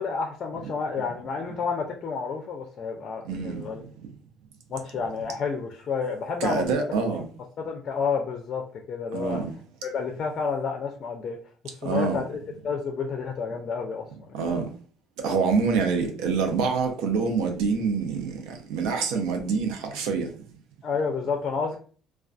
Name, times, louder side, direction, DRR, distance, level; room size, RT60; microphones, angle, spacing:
voice 1, 0.0-3.8 4.7-6.6 7.1-7.2 7.6-9.4 9.8-11.4 11.8-14.3 20.8-21.8, left 5 dB, 45° left, 0.4 m, -30 dB
voice 2, 3.3-3.6 6.4-7.3 9.1-9.5 11.8-12.2 14.3-14.6 15.2-20.3, right 5 dB, 85° right, 0.5 m, -26 dB
2.4 x 2.3 x 2.3 m
cardioid pair, 95°, 0 cm